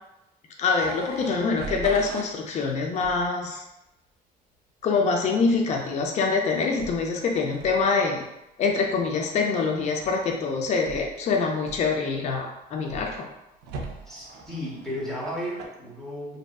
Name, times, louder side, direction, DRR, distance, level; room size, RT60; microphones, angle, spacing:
voice 1, 0.6-3.6 4.8-8.2 8.6-13.3, left 4 dB, 40° left, 1 dB, 0.4 m, -25 dB
sound 1, 0.7-2.3 2.9-3.3 6.7-7.1 7.5-7.9 10.0-10.3 10.8-11.2 11.6-12.1 12.8-13.2 13.6-15.7, right 4 dB, 80° right, 0.4 m, -40 dB
voice 2, 14.0-16.4, equal, 5° left, -7 dB, 0.8 m, -34 dB
2.6 x 2.2 x 2.2 m, 0.90 s
cardioid pair, 110°, 17 cm